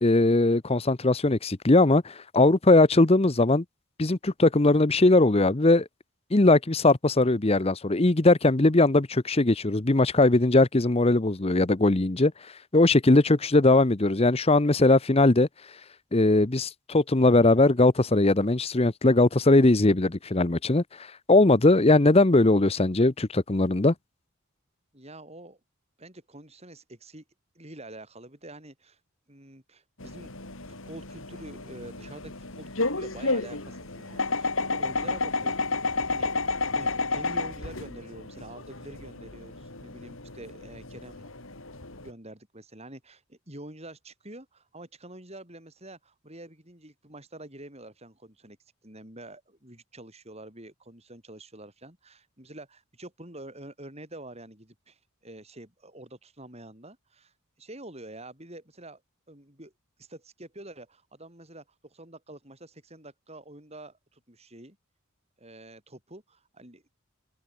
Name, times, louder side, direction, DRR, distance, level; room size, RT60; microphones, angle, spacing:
voice 1, 0.0-3.6 4.0-5.8 6.3-12.3 12.7-15.5 16.1-20.8 21.3-23.9, left 2 dB, 30° left, 0.8 m, -20 dB
voice 2, 24.9-25.6 26.0-27.2 27.5-29.0 29.3-30.3 30.9-41.3 42.0-48.6 48.8-59.0 59.3-59.7 60.0-64.8 65.4-66.9, right 1 dB, 30° right, 7.4 m, -46 dB
sound 1, 30.0-42.1, left 3 dB, 65° left, 4.4 m, -31 dB
head